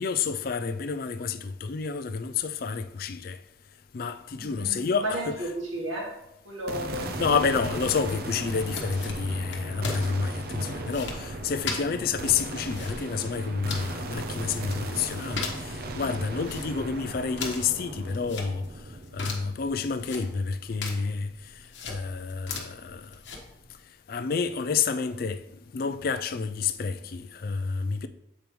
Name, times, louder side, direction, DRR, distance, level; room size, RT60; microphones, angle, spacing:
voice 1, 0.0-3.4 3.9-5.4 7.2-18.7 19.1-21.3 21.8-23.1 24.1-25.4 25.7-28.1, left 5 dB, 50° left, 0.4 m, -29 dB
voice 2, 4.3-6.1 6.4-7.4, right 1 dB, 85° right, 2.0 m, -34 dB
sound 1, 6.7-21.0, right 2 dB, 50° right, 0.5 m, -37 dB
sound 2, 8.6-23.8, left 4 dB, 65° left, 1.1 m, -40 dB
7.5 x 5.1 x 3.1 m
head